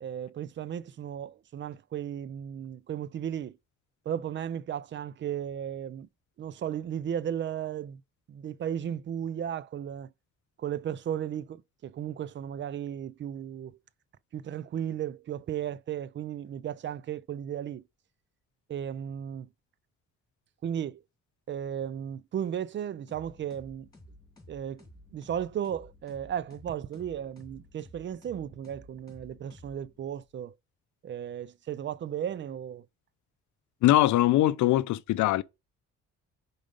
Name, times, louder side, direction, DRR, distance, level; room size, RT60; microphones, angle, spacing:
voice 1, 0.0-3.6 4.1-6.1 6.4-8.0 8.3-10.1 10.6-13.8 14.3-17.8 18.7-19.5 20.6-21.0 21.5-23.9 24.5-24.8 25.1-30.5 31.0-32.8, right 9 dB, 40° right, 0.4 m, -35 dB
sound 1, 23.1-30.2, left 1 dB, 10° left, 2.3 m, -54 dB
voice 2, 33.8-35.4, left 15 dB, 75° left, 0.5 m, -22 dB
5.1 x 3.9 x 5.1 m
cardioid pair, 90°, 30 cm